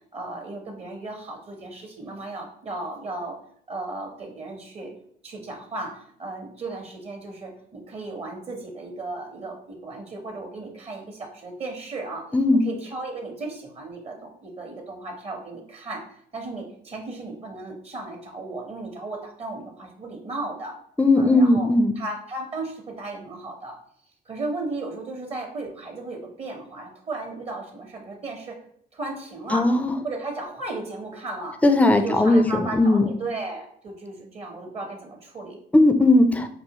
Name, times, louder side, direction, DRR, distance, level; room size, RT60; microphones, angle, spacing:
voice 1, 0.1-3.4 3.7-4.9 5.2-12.3 12.6-16.1 16.3-20.8 21.1-21.7 22.0-23.8 24.3-28.6 28.9-29.7 30.0-31.6 32.0-35.6, right 2 dB, 35° right, 2 dB, 0.8 m, -35 dB
voice 2, 12.3-12.7 21.0-21.9 29.5-29.9 31.6-33.1 35.7-36.5, left 2 dB, 10° left, 7 dB, 0.4 m, -18 dB
4.8 x 2.4 x 2.8 m, 0.66 s
cardioid pair, 110°, 17 cm